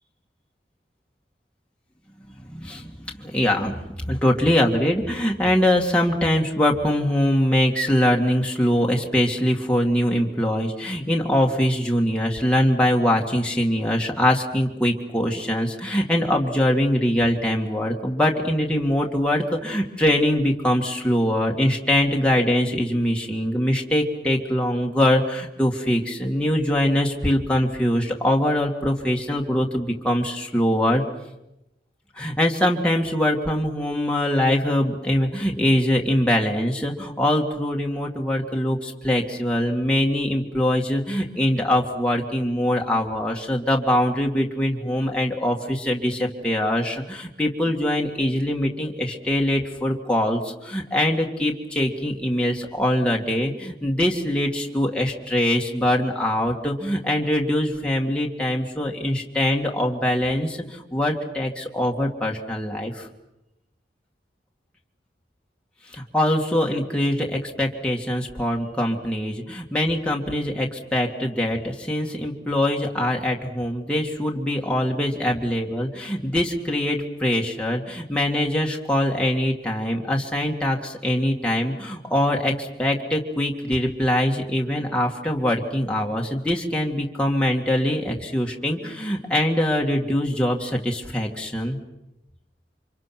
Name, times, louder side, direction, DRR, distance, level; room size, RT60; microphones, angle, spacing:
voice 1, 2.5-3.7 4.1-31.0 32.2-63.1 65.9-91.8, left 1 dB, 5° left, -1 dB, 2.1 m, -23 dB
29.0 x 26.0 x 6.1 m, 0.89 s
head